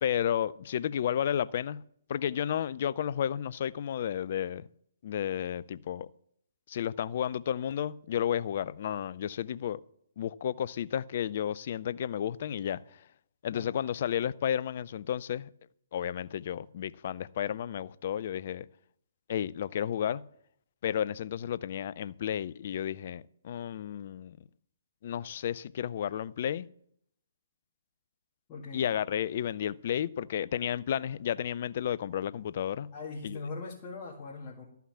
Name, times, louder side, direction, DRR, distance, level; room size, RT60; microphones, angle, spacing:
voice 1, 0.0-1.8 2.1-4.7 5.0-6.1 6.7-9.8 10.2-12.8 13.4-15.5 15.9-18.7 19.3-20.2 20.8-24.4 25.0-26.7 28.7-32.9 33.2-33.4, left 9 dB, 50° left, 0.4 m, -32 dB
voice 2, 28.5-28.9 32.9-34.7, left 4 dB, 25° left, 1.9 m, -41 dB
13.0 x 5.8 x 7.2 m
figure-of-eight pair, 130°, 0 cm